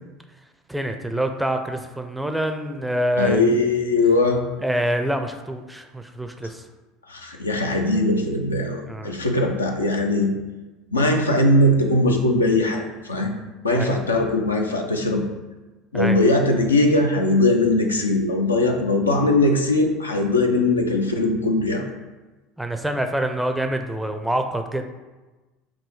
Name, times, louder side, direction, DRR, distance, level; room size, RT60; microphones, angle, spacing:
voice 1, 0.7-3.6 4.6-6.7 8.9-9.1 13.7-14.0 15.9-16.2 22.6-24.8, right 1 dB, 5° right, 6 dB, 0.4 m, -26 dB
voice 2, 3.2-4.4 7.1-10.3 10.9-13.3 13.6-15.2 15.9-21.9, left 2 dB, 85° left, 2 dB, 0.4 m, -20 dB
5.3 x 2.7 x 3.1 m, 1.2 s
figure-of-eight pair, 70°, 0 cm